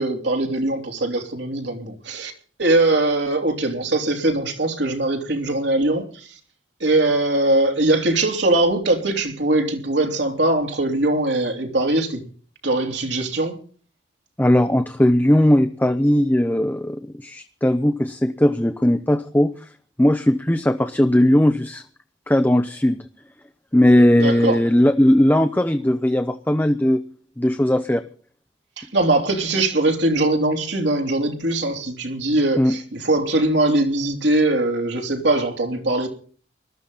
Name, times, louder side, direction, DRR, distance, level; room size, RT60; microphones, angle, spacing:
voice 1, 0.0-2.3 2.6-6.3 6.8-12.2 12.6-13.6 24.2-24.6 28.8-36.1, right 2 dB, 70° right, 3.1 m, -21 dB
voice 2, 14.4-19.5 20.0-21.8 22.3-23.0 23.7-27.0 27.4-28.0 32.6-32.7, left 1 dB, 10° left, 0.7 m, -18 dB
20.5 x 13.0 x 4.0 m
head